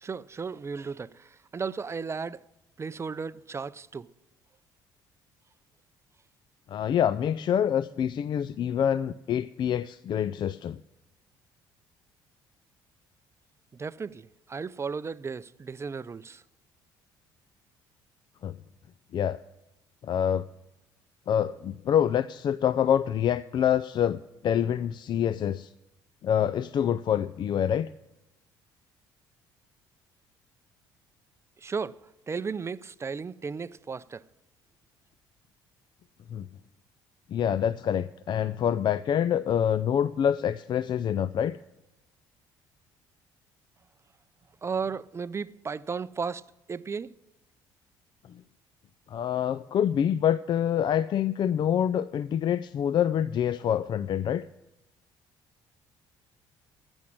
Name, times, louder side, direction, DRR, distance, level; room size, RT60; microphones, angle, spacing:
voice 1, 0.0-2.4 2.8-4.1 13.7-16.4 31.6-32.0 32.3-34.2 44.6-46.4 46.7-47.1, right 5 dB, 25° right, 0.5 m, -35 dB
voice 2, 6.7-10.8 18.4-18.6 19.1-19.4 20.0-20.5 21.3-25.7 26.2-27.9 36.3-36.5 37.3-41.6 49.1-54.4, left 9 dB, 50° left, 0.4 m, -26 dB
15.0 x 6.3 x 8.5 m
supercardioid pair, 65°, 10 cm